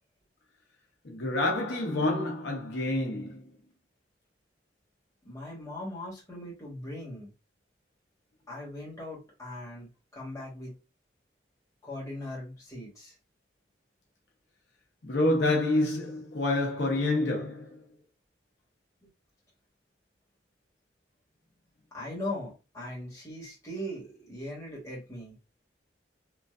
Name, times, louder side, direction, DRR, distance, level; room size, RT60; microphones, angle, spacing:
voice 1, 1.0-3.5 15.0-17.8, left 2 dB, 70° left, 0.8 m, -28 dB
voice 2, 5.2-7.3 8.5-10.7 11.8-13.1 21.9-25.3, left 1 dB, 15° left, 1.3 m, -39 dB
3.1 x 2.4 x 2.4 m
head